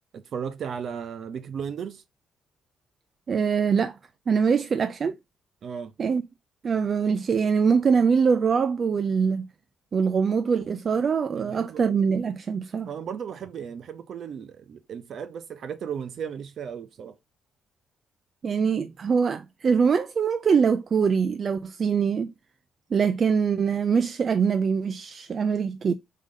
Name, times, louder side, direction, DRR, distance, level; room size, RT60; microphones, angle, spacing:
voice 1, 0.1-2.0 5.6-5.9 11.3-11.8 12.8-17.2, right 7 dB, 60° right, 0.8 m, -35 dB
voice 2, 3.3-4.0 4.3-5.1 6.0-6.2 6.6-9.5 9.9-12.9 18.4-22.3 22.9-25.9, right 6 dB, 45° right, 0.4 m, -23 dB
3.8 x 3.6 x 3.7 m
cardioid pair, 90°, 0 cm